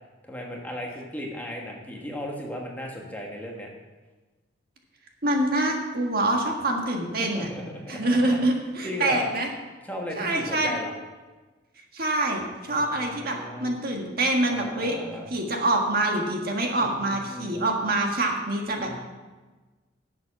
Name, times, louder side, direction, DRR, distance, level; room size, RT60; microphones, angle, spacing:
voice 1, 0.2-3.7 7.2-8.4 8.8-9.3 9.8-10.9 12.7-13.8 14.5-15.3 16.8-17.6 18.8-19.0, left 1 dB, 10° left, -1 dB, 1.4 m, -36 dB
voice 2, 5.2-7.5 7.9-9.5 10.2-10.7 11.9-15.0 15.3-19.0, right 2 dB, 55° right, 2 dB, 1.6 m, -25 dB
11.0 x 7.6 x 5.9 m, 1.3 s
head